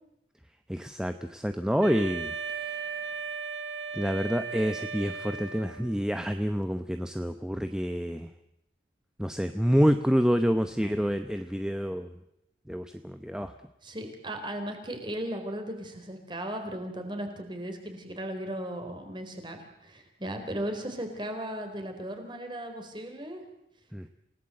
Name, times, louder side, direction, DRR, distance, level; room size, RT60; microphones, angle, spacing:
voice 1, 0.7-2.3 2.6-2.8 3.9-8.3 9.2-12.1 12.7-13.5 23.9-24.1, equal, 5° right, 8 dB, 0.8 m, -28 dB
Wind instrument woodwind instrument, 1.8-6.0, right 5 dB, 85° right, 1.7 m, -36 dB
voice 2, 13.8-23.4, right 1 dB, 25° right, 5 dB, 4.1 m, -36 dB
28.0 x 18.0 x 7.8 m, 0.82 s
head